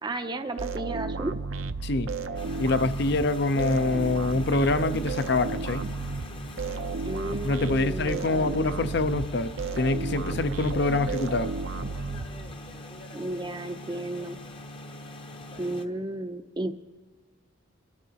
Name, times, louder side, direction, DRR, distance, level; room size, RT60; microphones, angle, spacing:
voice 1, 0.0-1.3 7.0-8.6 13.1-14.4 15.6-16.7, right 1 dB, 20° right, 0.5 m, -33 dB
sound 1, 0.6-12.8, right 3 dB, 75° right, 0.6 m, -33 dB
sound 2, 2.3-15.8, left 1 dB, 25° left, 0.8 m, -43 dB
voice 2, 2.6-5.9 7.4-11.5, left 2 dB, 55° left, 0.6 m, -25 dB
27.0 x 13.0 x 2.9 m
head